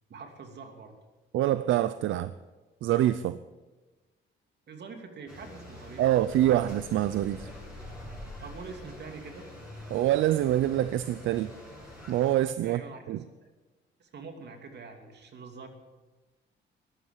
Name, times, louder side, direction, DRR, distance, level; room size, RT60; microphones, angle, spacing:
voice 1, 0.1-0.9 4.7-6.2 8.4-9.5 12.6-13.5 14.0-15.7, right 4 dB, 60° right, 5 dB, 2.8 m, -45 dB
voice 2, 1.3-2.3 2.8-3.4 6.0-7.5 9.9-11.5 12.1-12.8 13.1-13.2, right 13 dB, 80° right, 14 dB, 0.6 m, -25 dB
sound 1, 5.3-12.3, left 1 dB, 5° right, 7.5 m, -45 dB
15.0 x 11.0 x 8.4 m, 1.2 s
cardioid pair, 90°, 20 cm